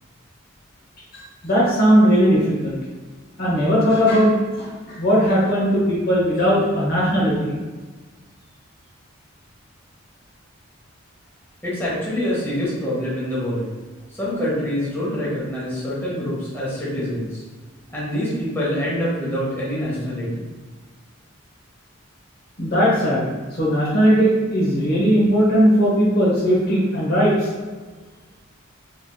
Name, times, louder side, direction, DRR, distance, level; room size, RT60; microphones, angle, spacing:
voice 1, 1.1-2.8 3.4-7.6 22.6-23.2 23.6-27.3, equal, 45° left, -5 dB, 0.8 m, -18 dB
voice 2, 11.6-13.7 14.2-17.4 17.9-20.4, equal, 10° left, -8 dB, 1.0 m, -25 dB
3.9 x 3.2 x 2.2 m, 1.4 s
head